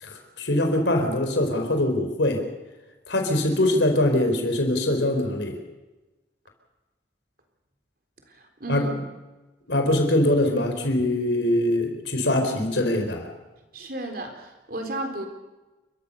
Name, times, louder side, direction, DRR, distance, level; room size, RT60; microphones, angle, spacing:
voice 1, 0.0-2.5 3.1-5.6 8.7-8.9 9.7-13.3, left 1 dB, 85° left, 4 dB, 4.2 m, -23 dB
voice 2, 8.3-8.9 13.7-15.3, right 2 dB, 55° right, 4 dB, 3.9 m, -33 dB
29.5 x 14.0 x 6.9 m, 1.1 s
head